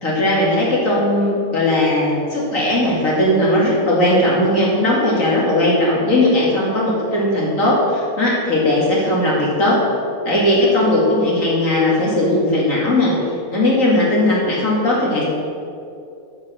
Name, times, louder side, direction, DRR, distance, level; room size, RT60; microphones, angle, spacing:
voice 1, 0.0-9.8 10.2-13.1 13.5-15.2, left 1 dB, 70° left, -5 dB, 2.7 m, -17 dB
10.5 x 7.6 x 6.2 m, 2.5 s
omnidirectional pair, 1.4 m